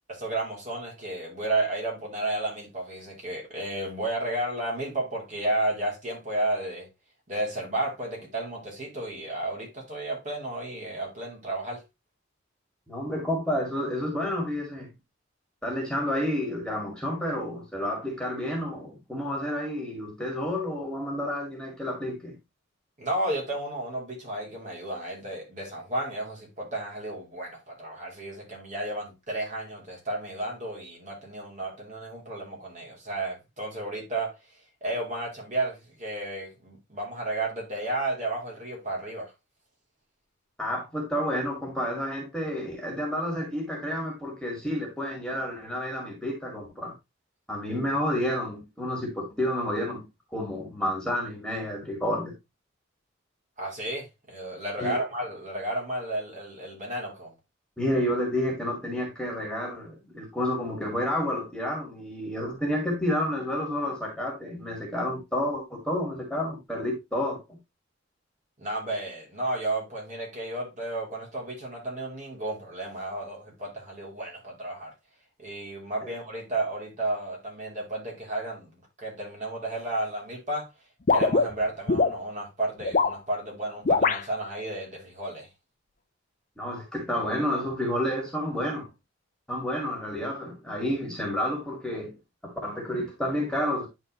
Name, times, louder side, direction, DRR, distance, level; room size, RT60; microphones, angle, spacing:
voice 1, 0.1-6.9 7.3-11.8 23.0-34.3 34.8-39.3 53.6-57.3 68.6-74.9 75.4-80.7 81.1-85.5, right 2 dB, 40° right, 2.9 m, -32 dB
voice 2, 12.9-14.9 15.6-22.4 40.6-46.9 47.5-50.1 50.3-52.3 54.8-55.0 57.8-67.6 86.6-88.9 89.5-92.2 92.4-93.9, left 1 dB, 5° left, 2.2 m, -30 dB
sound 1, 81.1-82.2 82.8-83.2 83.9-84.2, left 4 dB, 45° left, 0.6 m, -22 dB
10.5 x 4.1 x 3.0 m
head